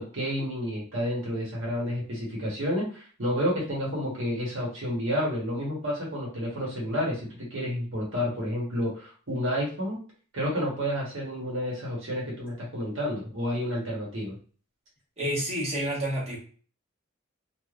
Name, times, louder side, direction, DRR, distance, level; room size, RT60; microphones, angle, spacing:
voice 1, 0.0-10.0 10.3-14.4, equal, 65° right, -4 dB, 1.2 m, -30 dB
voice 2, 15.2-16.4, equal, 30° right, -4 dB, 1.3 m, -29 dB
3.2 x 2.4 x 2.5 m, 0.40 s
head